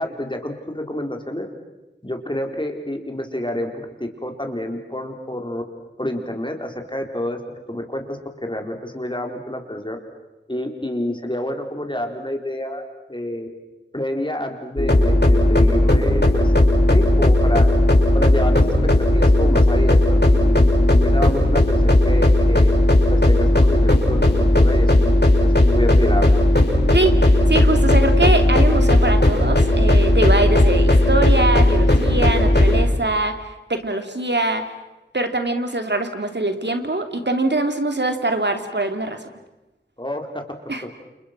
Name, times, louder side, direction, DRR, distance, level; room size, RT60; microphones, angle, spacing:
voice 1, 0.0-1.5 2.0-5.6 6.0-7.4 7.7-10.0 10.5-12.8 13.1-13.5 13.9-16.5 16.9-17.7 18.1-18.7 19.0-22.7 23.1-25.1 25.4-26.4 40.0-40.4, left 1 dB, 25° left, 3 dB, 4.4 m, -28 dB
sound 1, 14.8-32.8, left 1 dB, 60° left, 6.1 m, -15 dB
voice 2, 27.5-34.6 35.1-39.3 40.7-40.8, right 2 dB, 65° right, 6 dB, 2.9 m, -23 dB
29.5 x 29.0 x 6.1 m, 1.0 s
wide cardioid pair, 40°, 19 cm